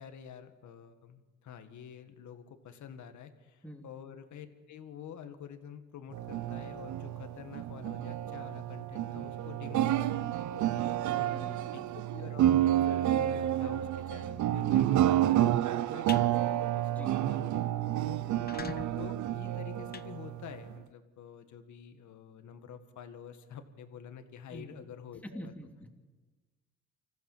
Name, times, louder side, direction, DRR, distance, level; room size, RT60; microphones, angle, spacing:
voice 1, 0.0-11.0 11.7-11.8 12.1-18.2 18.9-25.5, left 8 dB, 70° left, 8 dB, 1.9 m, -48 dB
sound 1, 6.1-20.8, right 12 dB, 70° right, 0.7 m, -30 dB
voice 2, 11.1-11.9 16.9-17.1 24.5-24.7 25.2-25.9, equal, 5° left, 3 dB, 2.9 m, -46 dB
sound 2, 15.8-16.2 16.7-16.9 17.3-17.4 17.6-17.7 18.2-20.8, left 7 dB, 30° left, 0.6 m, -44 dB
25.5 x 15.0 x 7.5 m, 1.3 s
cardioid pair, 90°, 30 cm